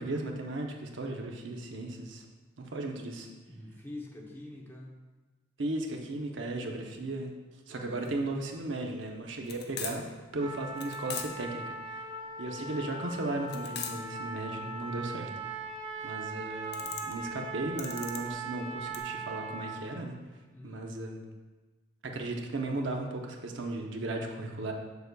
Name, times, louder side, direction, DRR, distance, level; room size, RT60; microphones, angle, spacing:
voice 1, 0.0-2.3 2.6-3.3 5.6-7.3 7.7-10.0 10.3-11.7 12.4-15.3 16.0-20.2 20.6-21.2 22.0-24.7, right 2 dB, 75° right, 2 dB, 0.7 m, -36 dB
voice 2, 3.5-4.9 7.7-8.0 12.5-13.2 20.5-20.8, left 1 dB, 10° left, -1 dB, 0.7 m, -47 dB
sound 1, 8.0-19.0, left 7 dB, 55° left, 0.6 m, -43 dB
Trumpet, 10.4-19.9, right 3 dB, 35° right, 0.7 m, -40 dB
6.8 x 6.5 x 2.3 m, 1.2 s
head